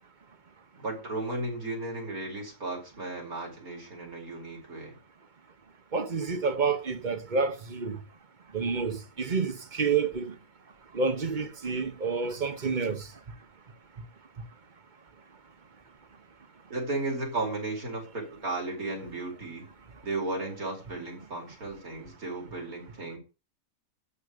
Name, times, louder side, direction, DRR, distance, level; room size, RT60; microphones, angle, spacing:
voice 1, 0.8-5.0 16.7-19.7 20.0-23.2, right 2 dB, 80° right, 5.2 m, -35 dB
voice 2, 5.9-8.0 8.5-10.3 10.9-13.0, right 5 dB, 35° right, 1.3 m, -29 dB
12.5 x 8.0 x 6.8 m
omnidirectional pair, 1.5 m